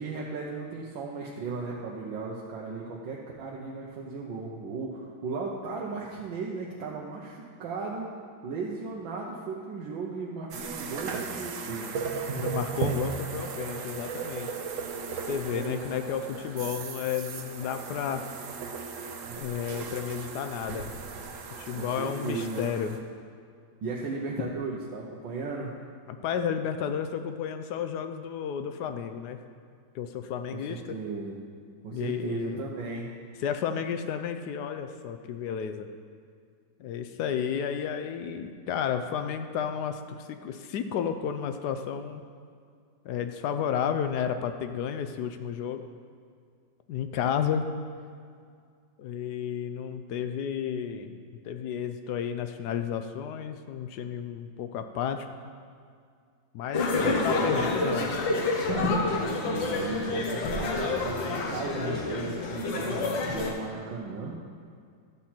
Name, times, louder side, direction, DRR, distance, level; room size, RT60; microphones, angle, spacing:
voice 1, 0.0-8.1 8.4-12.1 15.5-15.8 21.7-22.7 23.8-25.7 30.5-31.4 31.8-33.1 57.0-58.1 58.6-64.4, right 4 dB, 90° right, -3 dB, 1.6 m, -36 dB
sound 1, 10.5-23.0, right 5 dB, 60° right, 0.9 m, -36 dB
voice 2, 12.3-14.5 15.3-18.2 19.4-20.9 21.6-23.0 26.1-29.4 29.9-31.0 31.9-32.6 33.4-35.9 36.8-42.2 43.0-45.8 46.9-47.7 49.0-51.2 51.4-55.3 56.5-58.1, left 8 dB, 70° left, 8 dB, 1.1 m, -32 dB
sound 2, 56.7-63.5, left 3 dB, 90° left, 1.8 m, -28 dB
12.0 x 4.3 x 7.6 m, 2.2 s
omnidirectional pair, 2.0 m